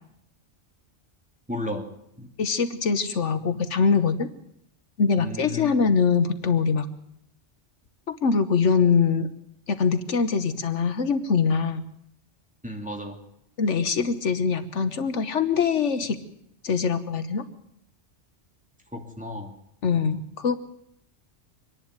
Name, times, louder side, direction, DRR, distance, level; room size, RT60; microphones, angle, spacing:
voice 1, 1.5-1.9 2.2-2.3 5.2-5.9 12.6-13.2 18.9-19.5, left 1 dB, 5° right, 2 dB, 2.8 m, -34 dB
voice 2, 2.4-4.3 5.0-6.9 8.1-9.3 9.7-11.9 13.6-16.2 16.6-17.5 19.8-20.6, left 5 dB, 75° left, 10 dB, 1.4 m, -23 dB
25.5 x 10.5 x 9.5 m, 0.75 s
omnidirectional pair, 1.2 m